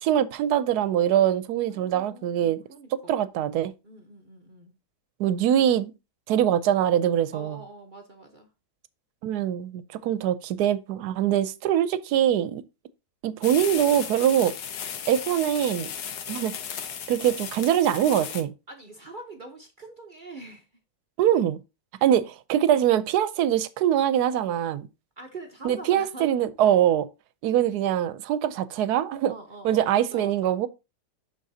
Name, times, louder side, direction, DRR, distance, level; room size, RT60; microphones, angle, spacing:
voice 1, 0.0-2.6 2.9-3.7 5.2-5.9 6.3-7.6 9.2-12.6 13.2-14.5 15.1-15.9 16.3-16.6 17.1-18.5 21.2-21.6 22.0-24.9 25.6-27.1 27.4-29.3 29.6-30.7, right 10 dB, 80° right, 1.1 m, -23 dB
voice 2, 1.7-3.2 3.8-4.7 7.3-8.5 18.7-20.7 22.0-22.1 25.2-26.4 29.3-30.7, right 2 dB, 40° right, 0.8 m, -44 dB
sound 1, 13.4-18.4, left 8 dB, 80° left, 1.4 m, -35 dB
11.0 x 3.9 x 2.7 m
omnidirectional pair, 1.7 m